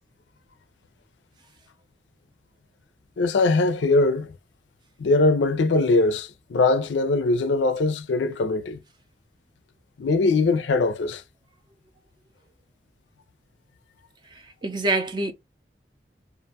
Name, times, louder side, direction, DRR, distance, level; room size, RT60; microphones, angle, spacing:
voice 1, 3.2-4.3 5.0-8.8 10.0-11.2, left 3 dB, 85° left, 0.4 m, -21 dB
voice 2, 14.3-15.3, right 2 dB, 25° right, 0.4 m, -26 dB
2.5 x 2.2 x 2.7 m
head